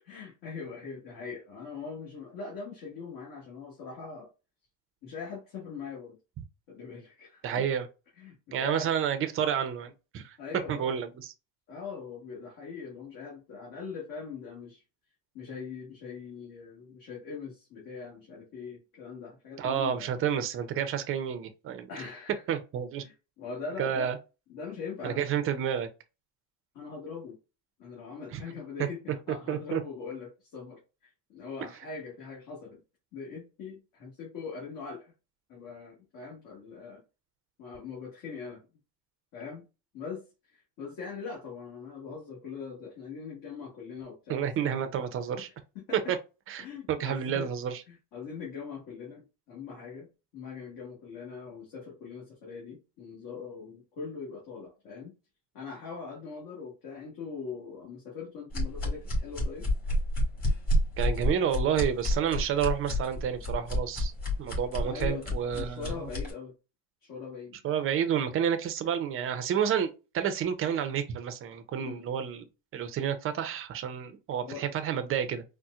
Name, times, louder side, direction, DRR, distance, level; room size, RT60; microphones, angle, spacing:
voice 1, 0.0-4.3 5.0-6.2 6.7-7.7 8.2-8.9 10.4-11.1 11.7-14.8 15.3-20.1 21.9-22.4 23.0-24.1 24.5-25.3 26.7-27.4 27.8-32.8 33.1-35.1 35.5-37.0 37.6-38.6 39.3-39.6 39.9-40.2 40.5-44.8 45.4-46.1 46.6-47.5 47.9-55.1 55.5-59.7 64.8-66.5 67.0-67.6 71.8-72.0 74.4-74.6, left 5 dB, 50° left, 1.4 m, -42 dB
voice 2, 7.4-7.9 8.5-10.4 10.7-11.3 19.6-21.9 22.5-23.0 23.8-24.2 25.0-25.9 28.3-28.4 29.5-29.8 44.3-45.5 46.1-46.2 46.5-47.8 61.0-64.1 64.4-66.0 67.6-72.4 72.7-75.4, right 8 dB, 30° right, 0.5 m, -30 dB
sound 1, 58.5-66.3, left 1 dB, 20° left, 1.7 m, -29 dB
4.1 x 2.1 x 2.4 m
supercardioid pair, 125°, 43 cm